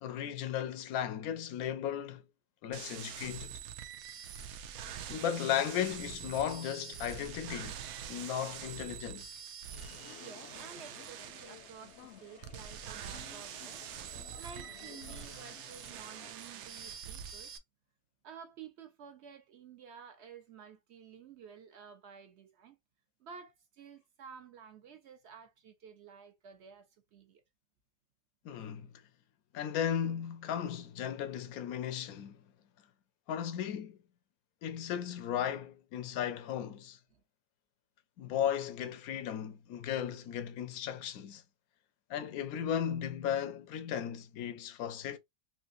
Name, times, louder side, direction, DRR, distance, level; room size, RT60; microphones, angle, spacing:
voice 1, 0.0-2.2 2.6-3.6 5.1-7.8 8.1-9.3 28.4-28.9 29.5-32.4 33.3-34.0 34.6-37.0 38.2-41.4 42.1-45.2, left 9 dB, 90° left, 1.1 m, -35 dB
sound 1, 2.7-17.6, right 9 dB, 85° right, 1.1 m, -45 dB
sound 2, 9.7-16.3, left 10 dB, 65° left, 0.7 m, -55 dB
voice 2, 10.2-17.5 18.2-22.8 23.2-27.4 37.1-37.2, right 6 dB, 60° right, 0.8 m, -52 dB
3.4 x 2.7 x 2.5 m
omnidirectional pair, 1.5 m